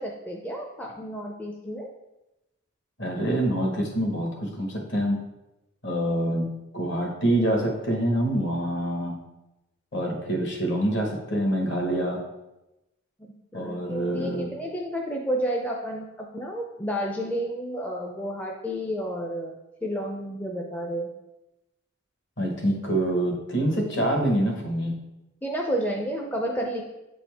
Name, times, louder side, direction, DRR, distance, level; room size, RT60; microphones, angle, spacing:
voice 1, 0.0-1.9 13.5-21.1 25.4-26.8, equal, 10° left, 0 dB, 0.4 m, -31 dB
voice 2, 3.0-5.2 5.8-6.5 6.7-9.2 9.9-12.2 13.5-14.5 22.4-24.9, right 1 dB, 55° left, 2 dB, 1.3 m, -26 dB
8.0 x 4.2 x 3.4 m, 0.96 s
head